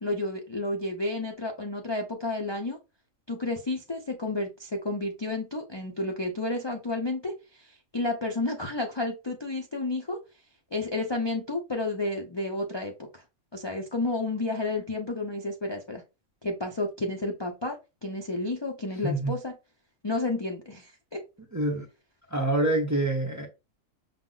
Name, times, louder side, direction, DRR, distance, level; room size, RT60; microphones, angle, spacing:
voice 1, 0.0-2.8 3.3-10.2 10.7-13.2 13.5-16.0 16.4-17.8 18.0-19.5 20.0-21.2, left 2 dB, 40° left, 0.3 m, -31 dB
voice 2, 19.0-19.3 21.5-21.9 22.3-23.5, right 1 dB, 20° right, 0.5 m, -26 dB
5.8 x 2.0 x 3.8 m
omnidirectional pair, 1.4 m